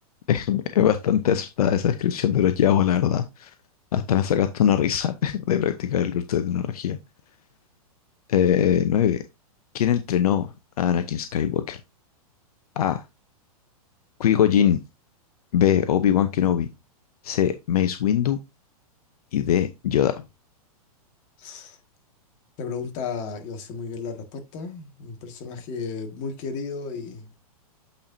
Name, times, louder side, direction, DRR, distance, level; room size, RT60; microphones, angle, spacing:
voice 1, 0.3-3.5 3.9-7.0 8.3-9.2 9.7-10.5 10.8-11.8 12.8-13.0 14.2-14.8 15.5-16.7 17.2-18.4 19.3-20.2, left 9 dB, 75° left, 0.8 m, -22 dB
voice 2, 21.4-21.8 22.6-27.3, left 5 dB, 40° left, 1.8 m, -34 dB
8.4 x 4.4 x 2.7 m
hypercardioid pair, 125°, 19 cm